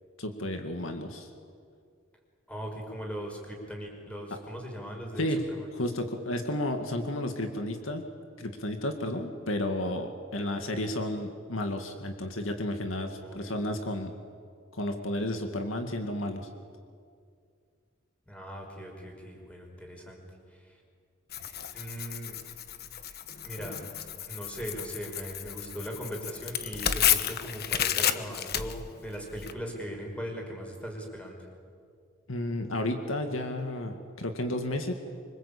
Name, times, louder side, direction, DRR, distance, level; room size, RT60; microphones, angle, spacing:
voice 1, 0.2-1.3 5.2-5.4 5.7-8.1 8.4-14.1 14.7-16.5 32.3-34.9, left 1 dB, 75° left, 5 dB, 2.2 m, -32 dB
voice 2, 2.5-5.7 13.2-13.5 18.3-20.2 20.5-20.8 21.7-22.4 23.4-23.8 24.2-31.4, equal, 5° left, 1 dB, 5.4 m, -39 dB
Tearing, 21.3-29.5, left 9 dB, 50° left, 1.1 m, -32 dB
26.0 x 25.0 x 8.6 m, 2.2 s
head